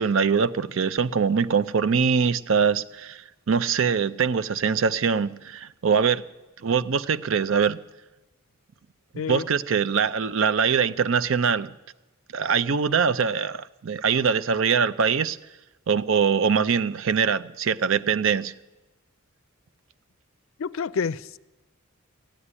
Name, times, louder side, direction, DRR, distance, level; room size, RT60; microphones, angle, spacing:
voice 1, 0.0-6.2 6.6-7.8 9.1-11.7 12.3-15.4 15.9-18.5, right 6 dB, 65° right, 0.5 m, -23 dB
voice 2, 20.6-21.4, left 6 dB, 75° left, 0.4 m, -28 dB
14.5 x 9.7 x 9.8 m
head